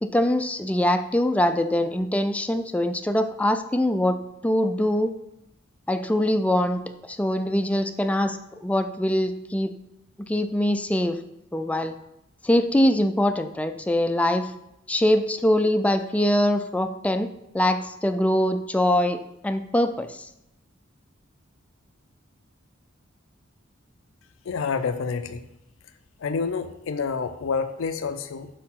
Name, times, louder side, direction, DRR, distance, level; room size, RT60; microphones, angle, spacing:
voice 1, 0.0-4.2 4.4-5.1 5.9-9.7 10.2-11.2 11.5-11.9 12.4-14.5 14.9-17.3 17.5-20.2, left 1 dB, 5° left, 8 dB, 0.3 m, -23 dB
voice 2, 24.5-25.4 26.2-28.5, left 5 dB, 80° left, 9 dB, 0.4 m, -28 dB
5.0 x 4.4 x 5.6 m, 0.85 s
head